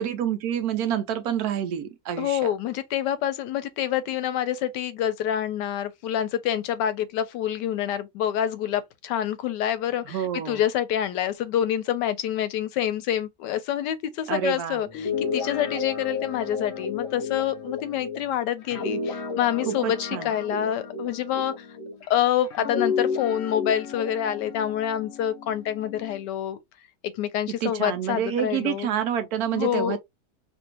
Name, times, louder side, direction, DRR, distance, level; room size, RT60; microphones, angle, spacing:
voice 1, 0.0-2.5 10.0-10.6 14.3-14.8 19.6-20.3 27.6-30.0, right 9 dB, 70° right, 1.0 m, -28 dB
voice 2, 2.2-21.7 22.1-26.6 27.0-28.9 29.5-30.0, left 10 dB, 90° left, 1.2 m, -27 dB
Guitar, 14.9-22.1 22.5-26.2, left 5 dB, 60° left, 0.7 m, -32 dB
2.9 x 2.6 x 2.8 m
omnidirectional pair, 1.8 m